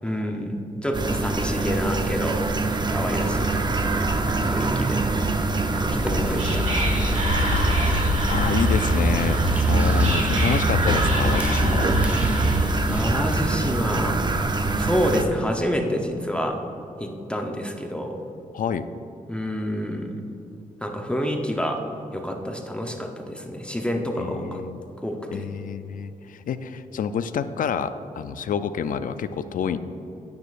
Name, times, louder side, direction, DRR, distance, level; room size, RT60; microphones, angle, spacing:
voice 1, 0.0-0.6 0.8-2.4 2.9-4.0 4.5-5.0 5.7-7.0 7.4-8.1 9.7-10.2 12.9-14.2 14.8-16.6 17.0-18.2 19.3-20.2 20.8-21.8 22.1-24.6 25.0-25.5, equal, 5° left, 2 dB, 0.8 m, -28 dB
sound 1, 0.9-15.2, right 3 dB, 30° right, 0.6 m, -25 dB
sound 2, 5.9-13.9, equal, 10° right, 1.1 m, -36 dB
Whispering, 5.9-12.9, equal, 50° right, 1.8 m, -24 dB
voice 2, 7.5-8.0 8.3-9.4 9.7-11.9 18.5-18.9 24.2-24.8 25.3-29.8, left 7 dB, 70° left, 12 dB, 0.4 m, -28 dB
9.8 x 9.4 x 2.5 m, 2.9 s
cardioid pair, 90°, 15 cm